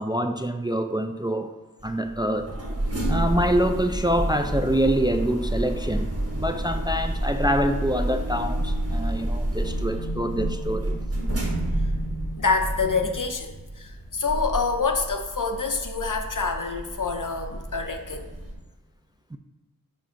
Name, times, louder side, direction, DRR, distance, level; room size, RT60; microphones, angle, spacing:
voice 1, 0.0-1.6 1.8-2.5 3.1-11.0 19.3-19.4, equal, 15° right, 7 dB, 0.3 m, -25 dB
sound 1, 1.8-18.5, right 1 dB, 45° right, 1.3 m, -29 dB
voice 2, 8.5-9.2 9.6-18.3, left 4 dB, 60° left, 5 dB, 0.7 m, -28 dB
7.3 x 2.5 x 5.6 m, 1.2 s
wide cardioid pair, 40°, 35 cm